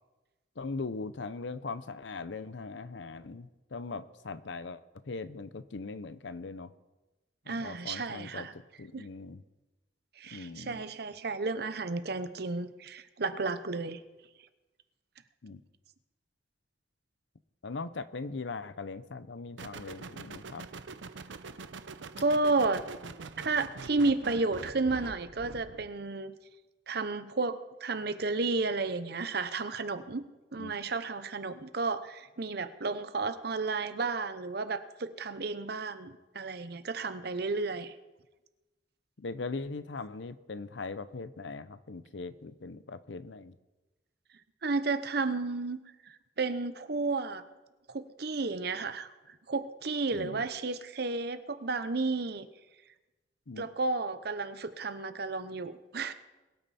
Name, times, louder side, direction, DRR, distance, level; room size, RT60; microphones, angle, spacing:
voice 1, 0.6-6.7 7.5-8.5 8.8-9.4 10.3-10.9 15.4-15.6 17.6-20.7 30.6-30.7 39.2-43.5 50.1-50.5 53.5-53.7, left 3 dB, 75° left, 14 dB, 0.7 m, -40 dB
voice 2, 7.5-8.5 8.9-9.0 10.2-14.0 22.2-22.8 23.4-26.3 26.9-30.2 30.5-37.9 44.6-45.8 46.1-47.4 47.9-52.5 53.6-56.1, right 3 dB, 60° right, 11 dB, 0.8 m, -32 dB
sound 1, 19.6-25.9, right 4 dB, 85° right, 0.7 m, -44 dB
22.0 x 9.1 x 4.2 m, 1.1 s
head